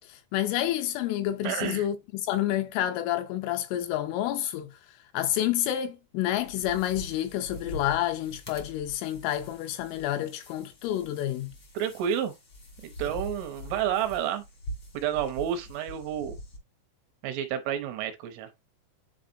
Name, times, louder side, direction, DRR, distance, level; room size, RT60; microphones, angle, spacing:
voice 1, 0.1-4.7 5.1-11.5, left 12 dB, 80° left, 3.0 m, -29 dB
voice 2, 1.4-1.9 11.7-12.3 12.8-14.4 14.9-16.4 17.2-18.5, right 9 dB, 80° right, 3.0 m, -30 dB
sound 1, 6.3-16.6, equal, 55° left, 1.2 m, -44 dB
10.0 x 4.0 x 2.6 m
omnidirectional pair, 6.0 m